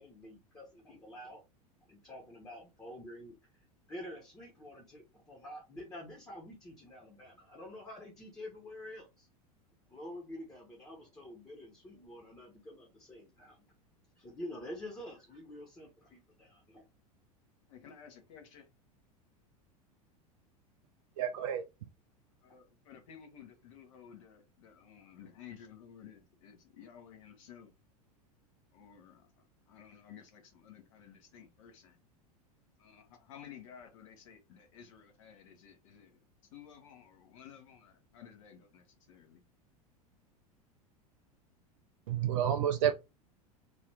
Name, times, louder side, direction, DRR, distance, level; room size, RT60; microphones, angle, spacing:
voice 1, 0.0-1.4 1.9-3.4 3.9-9.3 9.9-13.7 14.2-16.8, left 1 dB, 15° left, 1.2 m, -48 dB
voice 2, 17.7-18.7 22.4-27.7 28.7-32.0 32.8-36.2 36.5-39.4, left 8 dB, 55° left, 1.1 m, -54 dB
voice 3, 21.2-21.6 42.1-42.9, right 9 dB, 55° right, 0.4 m, -29 dB
3.0 x 2.8 x 3.3 m
figure-of-eight pair, 85°, 20 cm